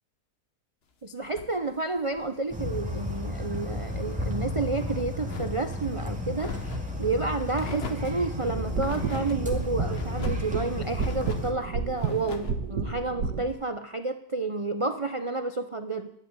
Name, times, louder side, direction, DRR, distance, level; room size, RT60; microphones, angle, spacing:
voice 1, 1.0-6.6 7.0-16.1, right 3 dB, 60° right, 9 dB, 0.3 m, -30 dB
sound 1, 1.2-3.3 3.6-4.2 4.5-5.9 6.3-7.0 7.5-8.2 8.8-9.4 9.9-10.5 10.9-11.5 11.9-12.6, left 5 dB, 40° left, 1.2 m, -42 dB
sound 2, 2.5-11.5, left 1 dB, 5° right, 2.0 m, -33 dB
sound 3, 8.5-13.5, right 5 dB, 90° right, 1.9 m, -32 dB
11.5 x 9.2 x 9.0 m, 0.76 s
omnidirectional pair, 1.7 m